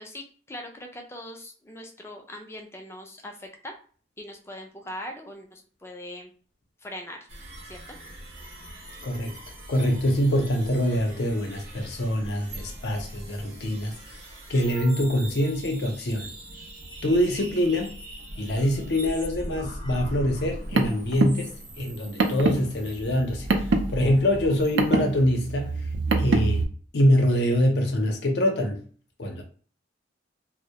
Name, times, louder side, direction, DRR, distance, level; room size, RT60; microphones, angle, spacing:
voice 1, 0.0-3.8 4.2-6.3 6.8-7.2 7.6-7.8, left 1 dB, 15° left, 0.4 m, -41 dB
sound 1, 7.3-24.9, right 1 dB, 70° right, 0.8 m, -41 dB
voice 2, 9.0-9.3 9.7-14.0 14.5-16.3 17.0-17.9 18.4-23.5 23.9-25.8 26.2-26.7 26.9-28.8 29.2-29.4, equal, 65° left, 0.6 m, -24 dB
Car, 20.4-26.6, right 3 dB, 85° right, 0.4 m, -26 dB
2.2 x 2.0 x 2.8 m
head